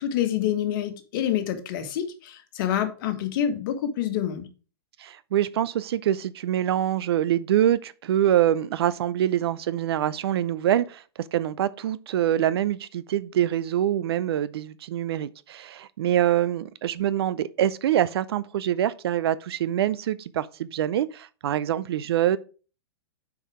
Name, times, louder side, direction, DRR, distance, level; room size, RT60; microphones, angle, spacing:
voice 1, 0.0-4.5, left 10 dB, 50° left, 1.5 m, -27 dB
voice 2, 5.0-11.0 11.3-22.4, right 11 dB, 70° right, 0.5 m, -25 dB
6.5 x 4.9 x 4.7 m
hypercardioid pair, 135°, 14 cm